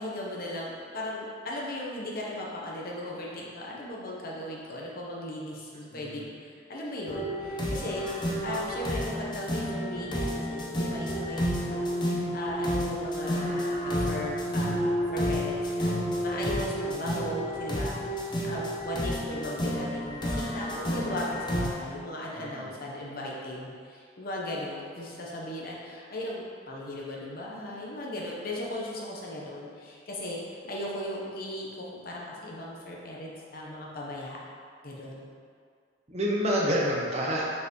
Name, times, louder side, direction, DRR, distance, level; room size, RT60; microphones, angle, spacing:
voice 1, 0.0-34.4 34.8-35.3, left 1 dB, 50° left, -4 dB, 0.9 m, -37 dB
sound 1, 7.1-21.7, equal, 25° left, 0.7 m, -30 dB
voice 2, 22.4-22.7 36.1-37.5, equal, 35° right, -3 dB, 0.8 m, -28 dB
5.6 x 5.4 x 3.1 m, 2.2 s
head